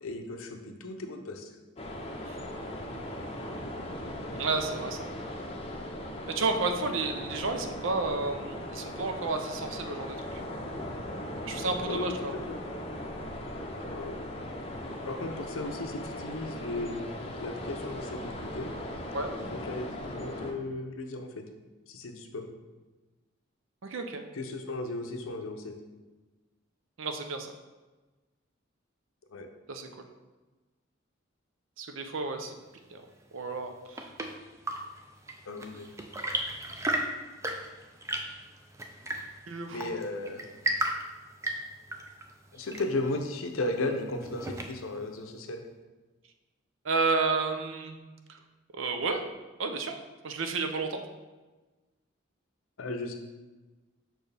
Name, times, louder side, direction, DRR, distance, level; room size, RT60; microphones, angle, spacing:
voice 1, 0.0-1.5 11.9-12.6 13.9-14.2 15.0-17.0 17.4-18.7 19.4-21.5 21.9-22.5 24.3-25.8 29.3-29.5 35.5-35.9 39.7-40.4 42.5-45.6 52.8-53.1, left 2 dB, 90° left, 5 dB, 0.7 m, -35 dB
sound 1, 1.8-20.5, left 1 dB, 30° left, 0.6 m, -38 dB
voice 2, 4.4-5.1 6.3-10.4 11.4-12.3 19.1-19.3 23.8-24.2 27.0-27.5 29.7-30.0 31.8-32.5 32.9-33.0 33.3-34.1 39.5-39.8 46.8-48.0 48.3-48.4 48.7-49.2 49.6-49.9 50.2-51.0, right 3 dB, 75° right, 6 dB, 0.6 m, -31 dB
Chirp tweet / Engine / Tap, 33.5-45.0, right 1 dB, 15° right, 0.4 m, -36 dB
6.2 x 4.5 x 3.4 m, 1.2 s
head